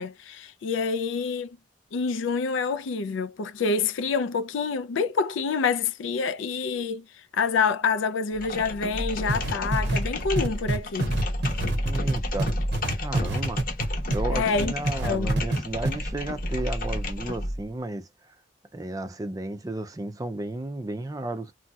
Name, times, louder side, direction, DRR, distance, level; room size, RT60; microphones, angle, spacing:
voice 1, 0.0-1.6 1.9-7.0 7.3-11.1 14.3-14.7 15.0-15.3, left 5 dB, 80° left, 0.4 m, -27 dB
sound 1, 8.3-17.6, left 1 dB, 45° left, 0.8 m, -30 dB
sound 2, 9.3-14.2 14.5-15.6 15.8-15.9, right 2 dB, 60° right, 0.7 m, -27 dB
voice 2, 11.8-12.5 13.0-13.6 14.1-18.3 18.7-21.5, right 2 dB, 20° right, 0.4 m, -33 dB
3.0 x 2.7 x 2.2 m
head